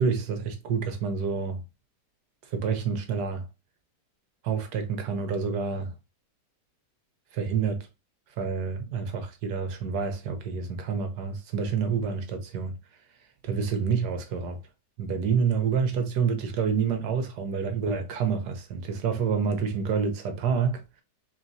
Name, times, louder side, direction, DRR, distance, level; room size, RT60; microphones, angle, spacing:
voice 1, 0.0-1.6 2.4-3.5 4.4-5.9 7.3-7.9 8.4-12.7 13.4-14.6 15.0-21.0, right 6 dB, 75° right, 1.4 m, -28 dB
4.3 x 3.4 x 2.6 m
omnidirectional pair, 1.8 m